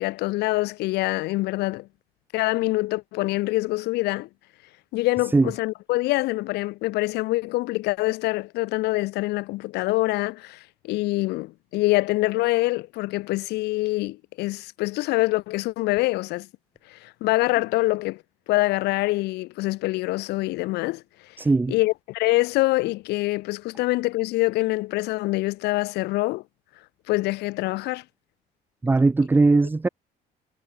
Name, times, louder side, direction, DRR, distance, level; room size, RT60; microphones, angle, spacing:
voice 1, 0.0-1.9 2.3-4.3 4.9-16.5 16.9-18.2 18.5-21.0 21.7-26.4 27.1-28.0, left 20 dB, 75° left, 0.4 m, -25 dB
voice 2, 21.4-21.7 28.8-29.9, right 3 dB, 10° right, 0.4 m, -19 dB
cardioid pair, 110°, 17 cm